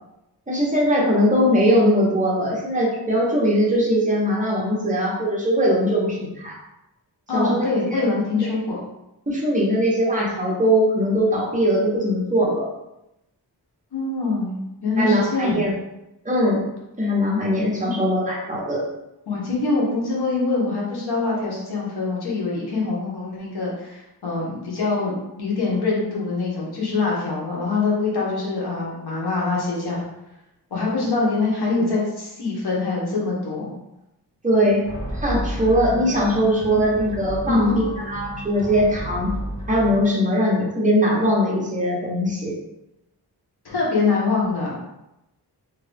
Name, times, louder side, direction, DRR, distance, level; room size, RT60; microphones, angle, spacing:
voice 1, 0.5-6.5 7.3-8.0 9.3-12.7 15.0-15.7 16.2-16.6 17.0-18.8 34.4-34.8 35.1-39.3 39.7-42.6, equal, 20° right, -4 dB, 1.0 m, -20 dB
voice 2, 7.3-8.8 13.9-15.7 17.8-17.9 19.3-30.1 30.7-33.7 37.4-37.8 43.6-44.8, left 3 dB, 65° left, -4 dB, 1.1 m, -24 dB
sound 1, 34.8-40.0, right 1 dB, 20° left, 1.0 m, -32 dB
2.8 x 2.6 x 3.4 m, 0.90 s
wide cardioid pair, 100°, 41 cm